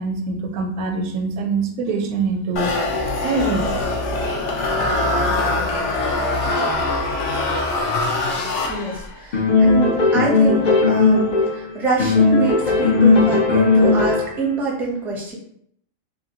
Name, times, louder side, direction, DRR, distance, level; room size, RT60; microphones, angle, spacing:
voice 1, 0.0-2.7 3.2-3.7 7.7-7.8 9.5-9.7, right 4 dB, 90° right, 4 dB, 1.0 m, -24 dB
sound 1, 2.6-9.2, left 2 dB, 65° left, 0.8 m, -23 dB
voice 2, 8.7-15.4, right 2 dB, ahead, -4 dB, 0.4 m, -25 dB
sound 2, 9.3-11.7 12.0-14.4, left 3 dB, 50° left, 0.6 m, -16 dB
2.8 x 2.7 x 2.8 m, 0.68 s
omnidirectional pair, 1.4 m